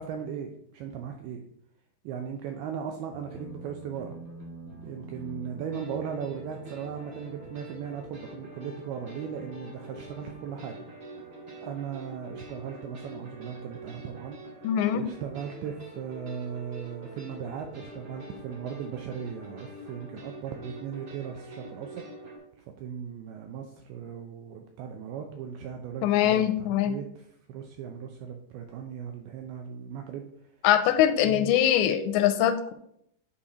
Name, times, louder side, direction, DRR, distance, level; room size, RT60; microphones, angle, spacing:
voice 1, 0.0-1.4 2.0-4.2 4.8-10.8 11.6-14.4 14.9-22.0 22.6-27.1 27.5-30.3 31.2-31.6, right 7 dB, 85° right, 4 dB, 2.2 m, -37 dB
sound 1, 3.1-22.4, right 1 dB, 25° right, 2.2 m, -45 dB
voice 2, 14.6-15.1 26.0-27.0 30.6-32.7, left 11 dB, 85° left, 10 dB, 2.8 m, -23 dB
8.5 x 4.3 x 4.9 m, 0.71 s
omnidirectional pair, 5.2 m